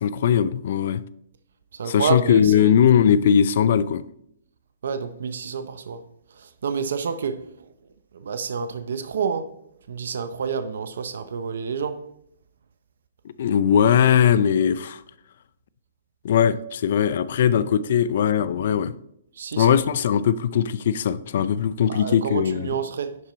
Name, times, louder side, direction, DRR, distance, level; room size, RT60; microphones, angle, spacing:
voice 1, 0.0-1.0 1.8-4.0 13.4-15.0 16.2-19.0 19.6-22.8, left 8 dB, 60° left, 0.4 m, -20 dB
voice 2, 1.8-2.7 4.8-6.0 6.4-7.5 8.1-9.5 9.9-12.0 19.4-19.8 21.9-23.2, right 6 dB, 75° right, 0.7 m, -28 dB
11.0 x 4.4 x 3.9 m
hypercardioid pair, 140°, 0 cm